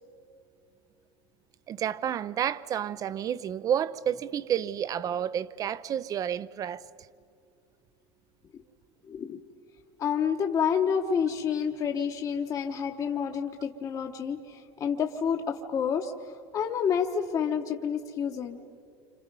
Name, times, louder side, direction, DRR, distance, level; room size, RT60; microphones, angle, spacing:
voice 1, 1.7-6.8, right 9 dB, 25° right, 0.5 m, -30 dB
voice 2, 9.0-9.4 10.0-18.6, left 7 dB, 25° left, 0.9 m, -29 dB
29.5 x 26.5 x 5.4 m
cardioid pair, 165°, 14 cm